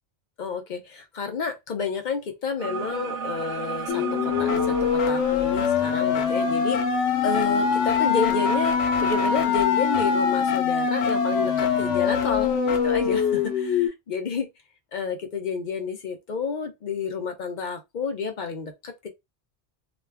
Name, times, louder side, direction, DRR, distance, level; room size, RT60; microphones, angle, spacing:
voice 1, 0.4-14.5 14.9-19.1, left 5 dB, 50° left, 0.6 m, -30 dB
sound 1, 2.6-9.5, right 6 dB, 80° right, 1.0 m, -37 dB
sound 2, 3.9-13.9, left 6 dB, 85° left, 0.9 m, -23 dB
2.4 x 2.2 x 3.3 m
omnidirectional pair, 1.2 m